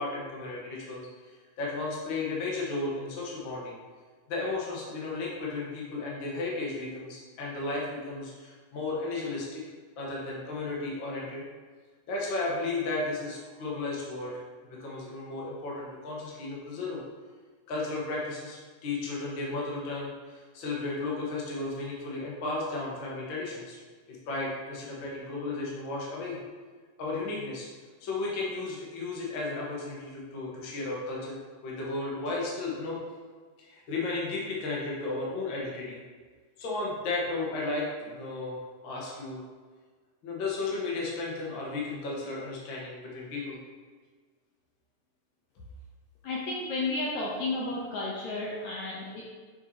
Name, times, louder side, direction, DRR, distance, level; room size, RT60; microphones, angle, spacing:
voice 1, 0.0-3.7 4.3-9.6 10.0-11.4 12.1-14.4 14.8-17.0 17.7-23.8 24.1-26.4 27.0-27.7 28.0-31.4 31.6-33.0 33.6-36.0 36.6-39.5 40.2-43.6, left 3 dB, 50° left, -4 dB, 1.5 m, -34 dB
voice 2, 46.2-49.2, left 2 dB, 70° left, -4 dB, 1.9 m, -32 dB
7.0 x 5.8 x 2.8 m, 1.5 s
omnidirectional pair, 3.8 m